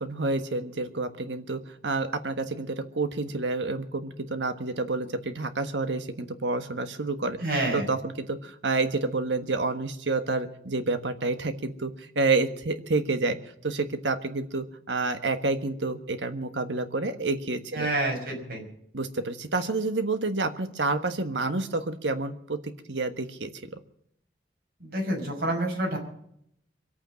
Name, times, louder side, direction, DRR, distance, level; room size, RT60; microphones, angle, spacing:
voice 1, 0.0-7.4 7.7-13.4 13.6-17.9 18.9-23.5, right 3 dB, 90° right, 9 dB, 1.4 m, -29 dB
voice 2, 7.4-7.9 17.7-18.6 24.8-26.0, right 1 dB, 60° right, 0 dB, 5.8 m, -28 dB
24.5 x 8.9 x 6.4 m, 0.71 s
head